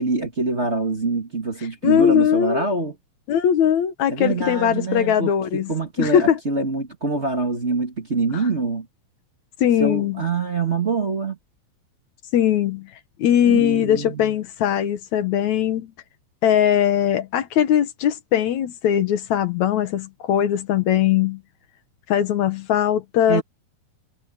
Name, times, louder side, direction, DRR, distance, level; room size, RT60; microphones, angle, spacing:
voice 1, 0.0-2.9 4.1-8.9 9.8-11.4 13.5-14.3 23.3-23.4, right 3 dB, 25° right, 2.0 m, -25 dB
voice 2, 1.8-2.7 3.3-5.7 6.0-6.4 8.3-8.4 9.6-10.2 12.3-12.9 13.2-15.9 16.4-21.4 22.1-23.4, left 10 dB, 75° left, 2.5 m, -20 dB
omnidirectional pair, 3.4 m